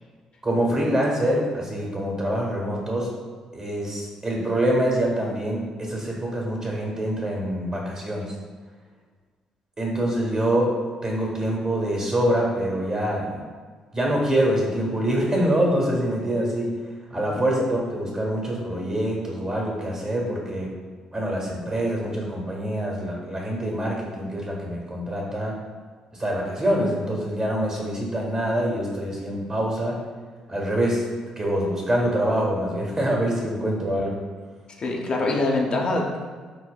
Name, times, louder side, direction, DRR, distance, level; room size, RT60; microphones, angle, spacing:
voice 1, 0.4-3.1 3.5-8.3 9.8-10.7 11.0-13.4 13.9-16.7 17.1-20.7 21.1-25.5 26.2-30.0 30.5-31.0 31.4-34.2, right 1 dB, 35° right, -1 dB, 1.3 m, -25 dB
voice 2, 34.8-36.2, left 2 dB, 50° left, 0 dB, 0.6 m, -24 dB
6.1 x 2.1 x 2.3 m, 1.5 s
supercardioid pair, 55°, 2 cm